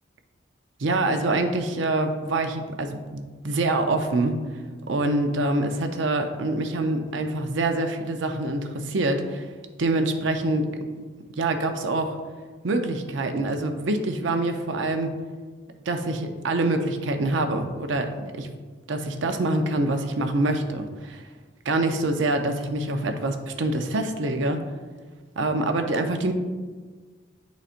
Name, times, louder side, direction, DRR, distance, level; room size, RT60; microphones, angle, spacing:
voice 1, 0.8-4.4 4.9-9.5 9.8-10.7 11.4-12.2 12.6-15.1 15.9-18.5 18.9-21.2 21.6-24.6 25.4-26.3, right 2 dB, 90° right, 6 dB, 0.6 m, -25 dB
9.9 x 4.0 x 2.5 m, 1.4 s
head